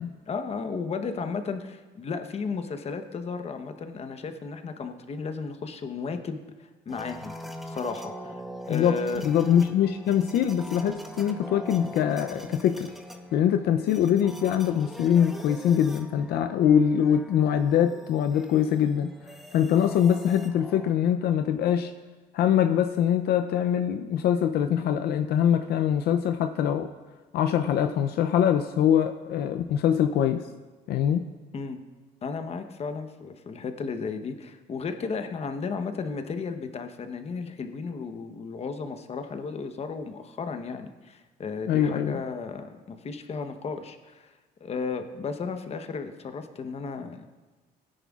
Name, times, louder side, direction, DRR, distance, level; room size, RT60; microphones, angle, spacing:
voice 1, 0.3-7.4 7.7-8.4 8.7-9.2 31.5-31.8 32.2-44.3 44.6-47.3, left 4 dB, 40° left, 7 dB, 1.0 m, -34 dB
sound 1, 6.9-20.9, equal, ahead, 0.9 m, -42 dB
voice 2, 8.7-12.9 13.3-19.1 19.5-21.9 22.3-26.9 27.3-30.4 30.9-31.2 41.7-42.2, left 9 dB, 70° left, 7 dB, 0.5 m, -23 dB
17.0 x 10.0 x 2.4 m, 1.2 s
cardioid pair, 110°, 17 cm